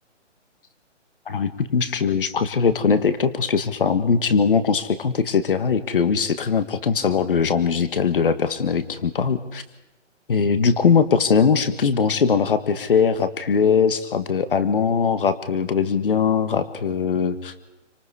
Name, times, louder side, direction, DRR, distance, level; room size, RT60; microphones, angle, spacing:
voice 1, 1.3-9.6 10.3-17.5, left 6 dB, 45° left, 12 dB, 1.6 m, -21 dB
27.5 x 25.0 x 4.9 m, 0.95 s
hypercardioid pair, 175°, 37 cm